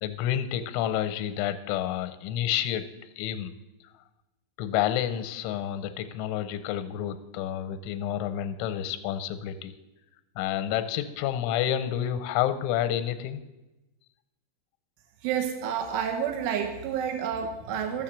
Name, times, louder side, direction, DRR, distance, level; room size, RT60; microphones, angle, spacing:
voice 1, 0.0-2.9 3.2-3.5 4.6-9.7 10.4-13.4, left 11 dB, 85° left, 11 dB, 3.0 m, -29 dB
voice 2, 15.2-18.0, right 8 dB, 85° right, 4 dB, 3.5 m, -29 dB
13.5 x 7.2 x 7.4 m, 1.0 s
omnidirectional pair, 5.6 m